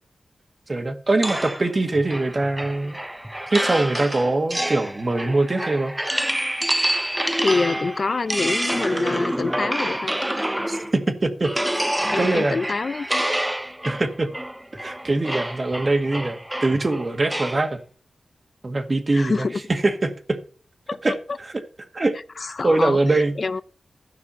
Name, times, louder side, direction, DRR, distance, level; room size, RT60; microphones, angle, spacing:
voice 1, 0.7-3.0 3.5-5.9 10.7-11.5 11.9-12.6 13.8-14.3 14.8-17.8 18.6-20.4 21.0-21.5 21.9-22.1 22.6-23.3, right 2 dB, 40° right, 1.7 m, -23 dB
sound 1, 1.2-11.0 11.4-17.7, right 1 dB, 10° right, 0.4 m, -27 dB
voice 2, 7.4-10.1 12.1-13.1 19.1-19.6 20.9-21.0 22.4-23.6, left 4 dB, 55° left, 0.5 m, -26 dB
13.5 x 6.0 x 5.7 m
wide cardioid pair, 70°, 0 cm